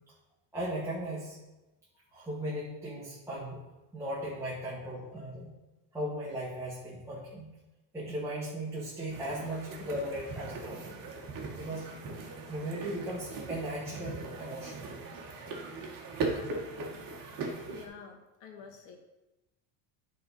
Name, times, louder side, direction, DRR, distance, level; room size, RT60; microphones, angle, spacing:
voice 1, 0.5-1.4 2.1-3.6 3.9-5.5 5.9-7.5 7.9-11.1 11.6-11.9 12.5-14.9, right 1 dB, 5° right, -9 dB, 1.9 m, -37 dB
sound 1, 9.1-17.9, right 3 dB, 40° right, 1.7 m, -39 dB
voice 2, 17.7-19.0, left 5 dB, 65° left, 2 dB, 1.8 m, -50 dB
9.4 x 4.3 x 5.5 m, 1.0 s
cardioid pair, 130°, 48 cm